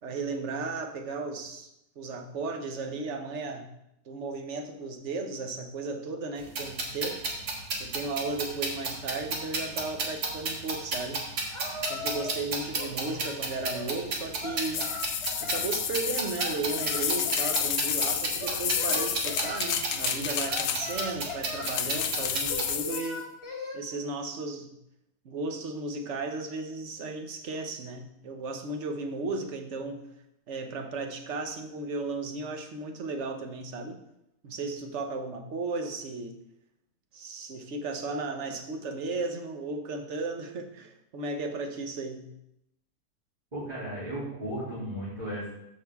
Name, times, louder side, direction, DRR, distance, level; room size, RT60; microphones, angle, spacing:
voice 1, 0.0-3.7 4.0-7.3 7.8-11.2 11.8-14.9 15.4-23.3 23.7-24.7 25.2-30.0 30.5-34.0 34.4-36.4 37.1-42.3, right 3 dB, 50° right, 5 dB, 1.1 m, -35 dB
sound 1, 6.4-22.7, right 3 dB, 85° right, 2.0 m, -33 dB
Singing, 11.5-12.4 12.7-14.0 14.4-15.7 16.4-17.7 18.4-19.6 20.4-21.7 22.5-23.8, left 3 dB, 20° left, 1.4 m, -39 dB
sound 2, 14.6-21.1 21.6-23.1, left 9 dB, 90° left, 1.2 m, -31 dB
voice 2, 43.5-45.5, right 1 dB, 25° right, -11 dB, 3.0 m, -35 dB
14.0 x 4.9 x 3.6 m, 0.82 s
omnidirectional pair, 1.7 m